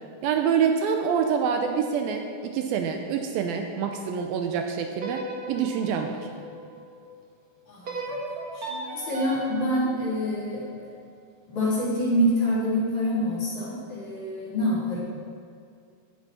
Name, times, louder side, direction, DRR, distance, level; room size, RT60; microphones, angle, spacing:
voice 1, 0.2-6.2, right 7 dB, 80° right, 4 dB, 2.4 m, -26 dB
sound 1, 4.9-7.1 7.8-11.0, right 1 dB, 65° right, 0.9 m, -37 dB
voice 2, 7.7-8.0 8.5-10.7 11.5-15.0, equal, 50° left, -7 dB, 4.6 m, -26 dB
16.5 x 8.8 x 4.3 m, 2.4 s
omnidirectional pair, 4.5 m